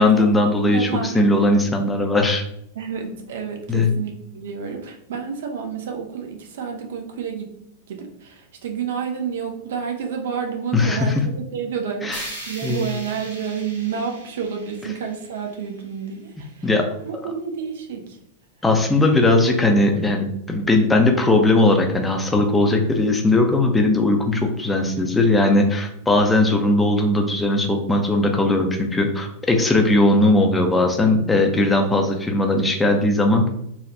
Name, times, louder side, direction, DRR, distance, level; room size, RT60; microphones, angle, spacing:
voice 1, 0.0-2.4 3.7-3.9 10.7-11.2 12.0-12.2 12.6-12.9 16.6-16.8 18.6-33.5, left 2 dB, 10° left, 2 dB, 0.5 m, -18 dB
voice 2, 0.7-1.5 2.7-7.5 7.9-16.7 17.0-18.2, right 6 dB, 60° right, 3 dB, 0.5 m, -30 dB
sound 1, 12.1-16.2, right 1 dB, 75° right, 1.0 m, -39 dB
3.3 x 2.3 x 2.7 m, 0.76 s
figure-of-eight pair, 90°, 0 cm